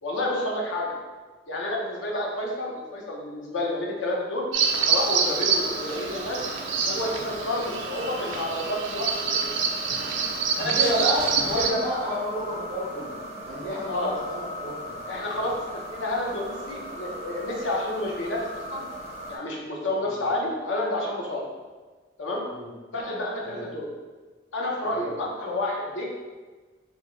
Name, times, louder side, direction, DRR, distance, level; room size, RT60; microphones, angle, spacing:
voice 1, 0.0-1.0 1.5-4.4 4.9-6.4 6.9-9.5 10.6-11.7 13.9-14.1 15.1-15.5 15.9-18.8 19.3-21.4 22.2-22.4 22.9-23.9 24.5-26.1, left 1 dB, 90° left, -2 dB, 0.7 m, -30 dB
Bird vocalization bird call bird song, 4.5-11.7, right 6 dB, 90° right, 0.4 m, -26 dB
sound 1, 4.6-19.4, equal, 35° right, 0.6 m, -38 dB
voice 2, 10.6-13.1 13.4-14.9 15.3-15.4 20.0-20.2 22.5-22.7 23.4-23.7 24.9-25.0, equal, 10° left, -17 dB, 1.4 m, -31 dB
3.3 x 2.5 x 3.0 m, 1.3 s
head